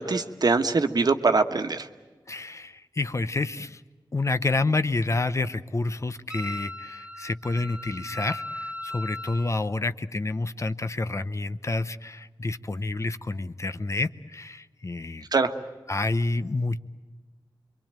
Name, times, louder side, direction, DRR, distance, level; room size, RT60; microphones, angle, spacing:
voice 1, 0.0-1.9 15.3-15.5, right 4 dB, 55° right, 7 dB, 1.4 m, -23 dB
voice 2, 2.3-3.8 4.1-15.2 15.9-16.8, left 2 dB, 40° left, 12 dB, 0.8 m, -29 dB
Wind instrument woodwind instrument, 6.3-9.5, left 1 dB, 15° right, 0.8 m, -37 dB
27.0 x 23.5 x 9.0 m, 1.3 s
wide cardioid pair, 80°, 8 cm